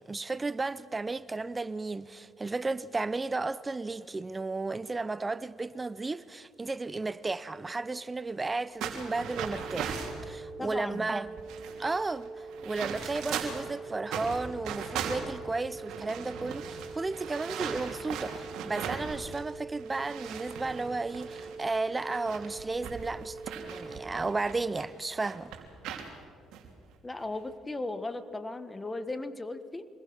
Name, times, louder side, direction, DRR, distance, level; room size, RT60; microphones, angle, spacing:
voice 1, 0.0-11.3 11.8-23.4 23.7-25.5, right 3 dB, 25° right, 0.7 m, -34 dB
sound 1, 8.8-10.2 10.9-11.0 11.3-13.7 14.1-19.5 19.8-24.8 25.2-26.1 26.5-26.7 27.2-27.5, right 7 dB, 70° right, 3.0 m, -39 dB
sound 2, 9.1-24.1, right 3 dB, 5° right, 1.5 m, -44 dB
voice 2, 10.6-11.1 27.0-29.9, left 2 dB, 20° left, 1.6 m, -36 dB
26.0 x 21.0 x 6.1 m
supercardioid pair, 65°, 0 cm